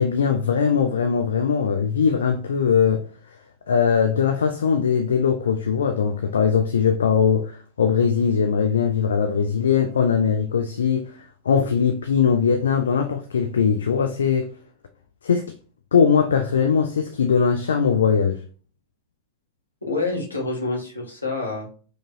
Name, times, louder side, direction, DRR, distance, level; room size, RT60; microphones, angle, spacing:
voice 1, 0.0-3.0 3.7-14.5 15.2-15.5 15.9-18.4, left 6 dB, 70° left, 0.4 m, -20 dB
voice 2, 19.8-21.7, left 3 dB, 85° left, 1.6 m, -27 dB
4.8 x 3.0 x 2.5 m
figure-of-eight pair, 90°, 0 cm